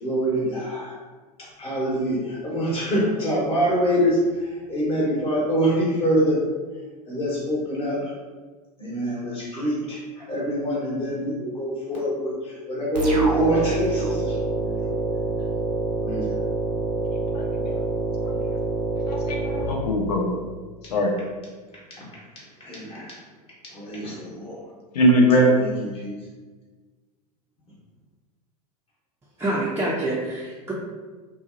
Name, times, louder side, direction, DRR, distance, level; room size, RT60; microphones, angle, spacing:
voice 1, 0.0-0.9 1.6-4.2 4.7-6.4 7.1-8.1 8.8-14.9 16.0-16.4 22.6-23.1 23.7-24.6 25.6-26.2, right 1 dB, 30° left, -6 dB, 0.9 m, -25 dB
sound 1, 12.9-20.4, right 2 dB, 85° right, 0.6 m, -27 dB
voice 2, 17.3-17.8 18.2-18.6 19.1-20.3 20.9-21.1 24.9-25.5, equal, 75° left, 0 dB, 0.6 m, -21 dB
voice 3, 29.4-30.7, right 1 dB, 10° right, -7 dB, 0.4 m, -26 dB
2.7 x 2.0 x 2.4 m, 1.4 s
figure-of-eight pair, 90°, 21 cm